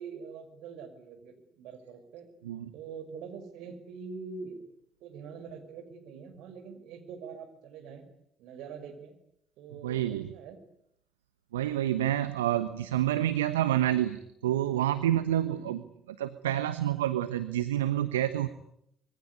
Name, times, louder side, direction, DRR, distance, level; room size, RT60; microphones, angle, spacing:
voice 1, 0.0-2.3 2.7-4.6 5.0-8.0 8.4-9.1 9.6-10.6 15.4-15.8, right 5 dB, 65° right, 6 dB, 5.6 m, -44 dB
voice 2, 9.8-10.3 11.5-15.8 16.2-18.5, right 12 dB, 80° right, 12 dB, 1.1 m, -28 dB
25.5 x 22.5 x 9.7 m, 0.76 s
hypercardioid pair, 55°, 0 cm